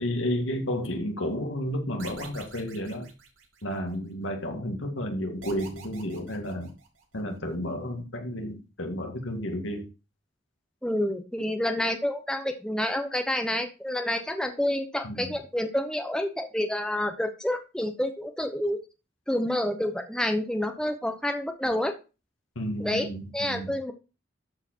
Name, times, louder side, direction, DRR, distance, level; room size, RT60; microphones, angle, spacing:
voice 1, 0.0-3.1 3.6-6.7 7.1-9.9 15.0-15.4 22.6-23.8, equal, 80° left, 3 dB, 2.1 m, -32 dB
sound 1, 2.0-4.0 5.4-7.2, right 5 dB, 90° right, 2.8 m, -47 dB
voice 2, 10.8-18.8 19.3-21.9 22.8-23.1 23.3-23.9, left 1 dB, 5° left, 5 dB, 0.9 m, -28 dB
13.0 x 4.8 x 4.5 m, 0.31 s
head